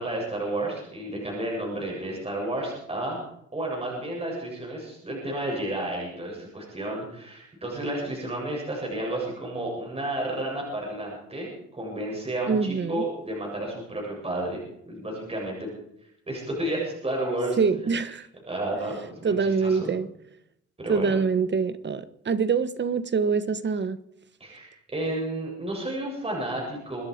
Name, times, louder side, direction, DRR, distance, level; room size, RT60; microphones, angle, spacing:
voice 1, 0.0-3.2 3.5-14.6 14.9-15.7 16.3-17.6 18.5-19.9 20.8-21.2 24.4-27.0, right 1 dB, 20° right, 8.0 m, -31 dB
voice 2, 12.5-13.0 17.6-18.3 19.2-20.1 20.9-24.0, right 5 dB, 35° right, 1.2 m, -25 dB
25.5 x 10.5 x 5.1 m
cardioid pair, 90°, 30 cm